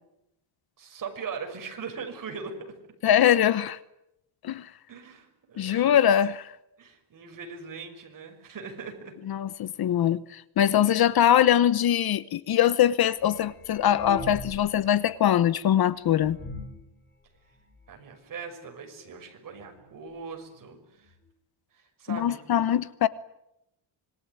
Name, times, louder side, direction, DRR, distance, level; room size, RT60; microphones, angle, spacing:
voice 1, 0.8-2.8 4.9-6.0 6.8-9.1 10.8-11.0 17.9-21.1 21.7-22.4, right 5 dB, 45° right, 6.2 m, -40 dB
voice 2, 3.0-3.8 4.4-4.7 5.6-6.4 9.3-16.4 22.1-23.1, left 10 dB, 55° left, 1.0 m, -22 dB
sound 1, 13.2-14.8 15.1-15.2 15.8-15.9 16.2-16.9 17.6-17.7 18.0-18.1 18.3-18.6 19.5-19.6 19.8-19.9 20.6-20.7 20.9-21.0, left 3 dB, 25° left, 5.4 m, -40 dB
26.0 x 22.0 x 9.7 m
cardioid pair, 135°, 45 cm